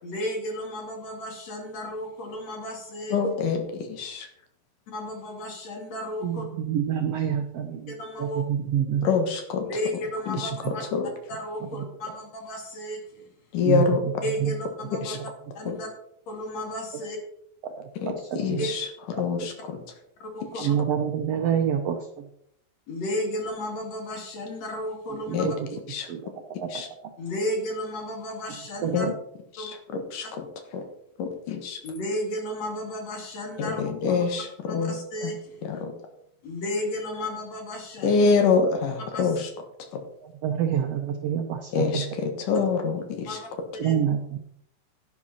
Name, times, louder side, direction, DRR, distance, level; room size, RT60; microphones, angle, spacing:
voice 1, 0.0-3.1 4.9-6.4 7.9-8.4 9.6-10.8 11.3-13.3 14.2-15.2 15.5-15.9 16.3-17.2 18.6-18.7 20.2-20.7 22.9-25.5 27.2-29.1 29.6-29.7 31.8-34.2 34.7-35.7 36.4-38.2 39.1-39.3 43.3-43.5 43.8-43.9, left 1 dB, 50° left, 2 dB, 3.6 m, -33 dB
voice 2, 3.1-4.3 9.0-9.7 10.3-10.5 10.9-11.1 13.5-14.0 14.9-15.2 15.7-15.8 18.0-19.8 20.6-20.7 25.3-25.5 25.9-26.1 26.7-26.9 28.9-29.1 29.6-29.8 30.1-30.4 30.7-30.8 31.2-31.8 33.6-35.0 35.2-35.3 35.6-35.9 38.0-39.5 39.9-40.0 41.7-43.4, left 5 dB, 70° left, 6 dB, 2.9 m, -26 dB
voice 3, 6.2-9.1 11.7-11.9 13.6-14.5 15.1-15.2 17.6-18.7 19.1-19.5 20.6-22.3 25.1-25.7 26.1-26.3 26.6-27.1 28.8-29.1 40.2-42.1 43.8-44.4, right 8 dB, 70° right, 5 dB, 1.5 m, -28 dB
11.0 x 10.5 x 4.3 m, 0.71 s
omnidirectional pair, 4.0 m